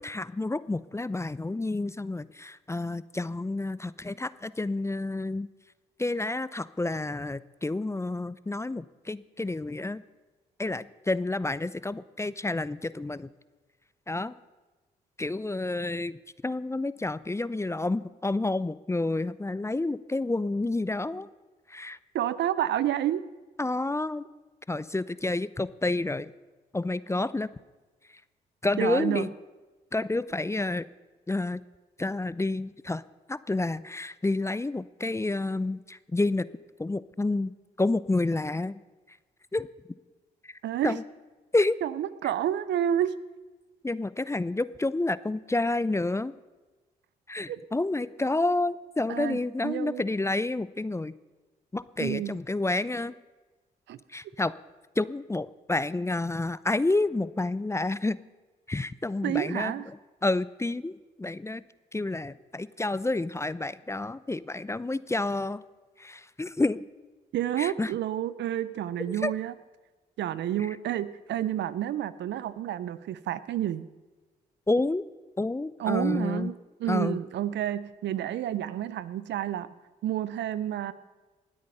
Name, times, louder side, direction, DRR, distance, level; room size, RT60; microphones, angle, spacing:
voice 1, 0.0-5.5 6.0-10.0 10.6-13.3 14.1-14.4 15.2-21.3 21.7-22.0 23.6-24.2 24.7-26.3 26.7-27.5 28.6-29.3 29.9-30.9 31.3-31.6 32.0-33.0 33.3-36.5 36.8-38.8 39.1-39.2 39.5-39.7 40.4-40.6 40.8-41.0 41.5-41.8 43.8-46.3 47.3-51.1 51.7-53.1 54.1-54.5 55.0-58.2 58.7-61.6 61.9-65.6 66.0-66.8 67.6-67.9 69.2-69.3 70.6-70.7 74.7-75.0 75.4-76.5 76.9-77.2, left 2 dB, 15° left, 18 dB, 0.5 m, -29 dB
voice 2, 22.1-23.2 28.8-29.3 40.6-41.0 41.8-43.2 47.5-47.6 49.1-49.4 49.6-50.0 52.0-52.4 53.9-54.0 59.2-59.8 67.3-69.5 70.2-73.8 75.8-76.5 76.8-79.7 80.0-80.9, right 11 dB, 70° right, 16 dB, 0.6 m, -29 dB
19.5 x 8.6 x 5.5 m, 1.2 s
supercardioid pair, 50°, 19 cm